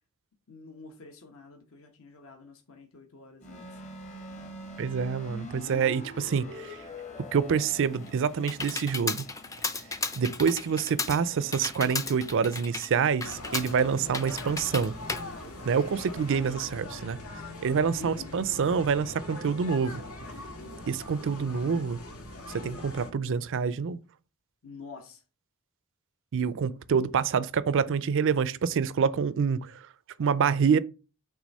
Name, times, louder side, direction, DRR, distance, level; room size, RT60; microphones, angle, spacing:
voice 1, 0.5-3.8 18.0-18.4 24.6-25.2, left 4 dB, 65° left, 1.2 m, -47 dB
sound 1, 3.4-16.5, left 1 dB, 35° left, 1.1 m, -47 dB
voice 2, 4.8-6.8 7.3-9.2 10.2-14.9 15.6-17.2 17.6-20.0 20.9-22.0 22.5-24.0 26.3-29.8 30.2-30.8, right 6 dB, 60° right, 0.4 m, -27 dB
Computer keyboard, 7.7-16.2, left 3 dB, 15° left, 0.5 m, -36 dB
sound 2, 13.2-23.1, left 2 dB, 85° left, 1.8 m, -42 dB
6.2 x 3.4 x 5.3 m
head